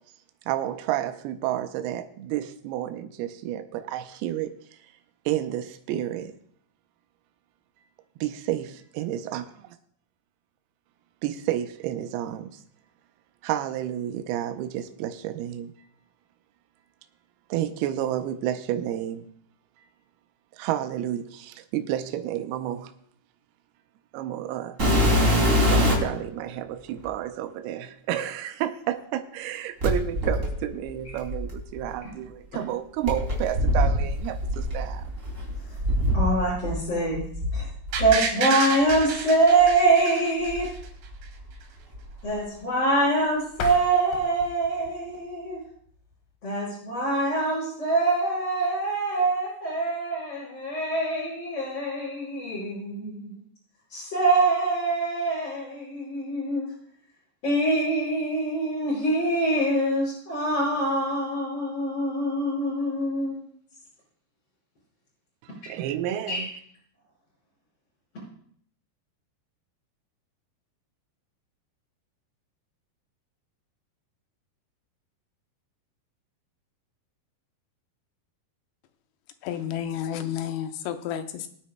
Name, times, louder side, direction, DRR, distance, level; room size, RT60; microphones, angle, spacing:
voice 1, 0.5-4.5 5.3-6.3 8.2-9.5 11.2-12.6 13.4-15.7 17.5-19.2 20.6-22.9 24.1-25.0 25.7-35.1 65.4-66.5, right 12 dB, 85° right, 8 dB, 2.6 m, -30 dB
sound 1, 24.8-26.2 27.0-27.1 29.8-31.9 33.0-36.8 37.1-38.1 38.9-39.0 39.6-39.7 40.4-41.5 41.8-42.3 43.6-43.7, equal, 20° right, 2.6 m, -24 dB
voice 2, 36.1-37.7 38.0-40.7 42.2-45.6 46.4-53.4 53.9-56.7 57.4-63.5 66.3-66.5, right 2 dB, 40° left, -10 dB, 6.0 m, -24 dB
sound 2, 37.9-40.9 41.2-41.3, right 6 dB, 65° right, 2.7 m, -29 dB
sound 3, 43.5-46.4, left 6 dB, 65° left, 2.8 m, -39 dB
voice 3, 79.4-81.5, left 10 dB, 85° left, 8 dB, 2.8 m, -31 dB
23.0 x 9.3 x 2.2 m, 0.62 s
omnidirectional pair, 4.6 m